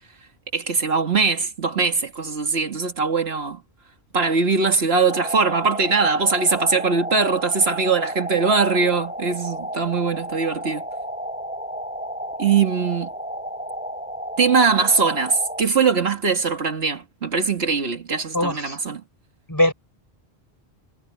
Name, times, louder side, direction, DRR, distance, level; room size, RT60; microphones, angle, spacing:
voice 1, 0.5-3.6 4.1-10.8 12.4-13.1 14.4-19.0, right 5 dB, 75° right, 2.1 m, -21 dB
sound 1, 5.1-15.6, equal, 5° right, 3.8 m, -32 dB
voice 2, 18.3-18.8 19.5-19.7, left 1 dB, 20° left, 5.7 m, -21 dB
omnidirectional pair, 1.1 m